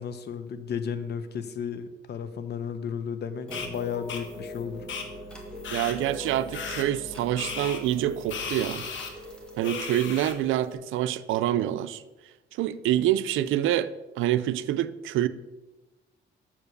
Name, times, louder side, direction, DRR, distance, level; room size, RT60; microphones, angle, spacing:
voice 1, 0.0-4.9, left 7 dB, 55° left, 0.8 m, -34 dB
sound 1, 3.5-3.7 4.1-4.2 4.9-5.0 5.6-5.9 6.5-6.8 7.4-7.8 8.3-9.1 9.6-10.3, left 6 dB, 70° left, 1.2 m, -35 dB
sound 2, 3.5-10.7, equal, 5° left, 1.9 m, -41 dB
voice 2, 5.7-8.9 9.6-12.0 12.6-13.9 14.2-15.3, right 12 dB, 85° right, 0.5 m, -26 dB
7.3 x 4.9 x 6.5 m
cardioid pair, 90°, 20 cm